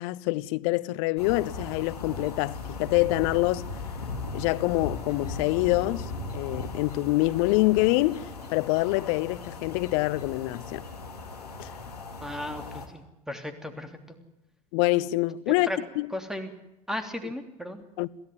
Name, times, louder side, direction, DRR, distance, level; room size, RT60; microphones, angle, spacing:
voice 1, 0.0-3.7 4.3-10.8 11.6-11.7 14.7-15.7 16.0-16.1 18.0-18.1, left 20 dB, 55° left, 0.8 m, -26 dB
sound 1, 1.2-12.9, left 3 dB, 80° left, 3.1 m, -38 dB
voice 2, 12.2-14.0 15.6-15.8 16.1-16.5 16.9-17.8, left 1 dB, ahead, 3.2 m, -35 dB
23.0 x 15.5 x 9.6 m
figure-of-eight pair, 75°, 20 cm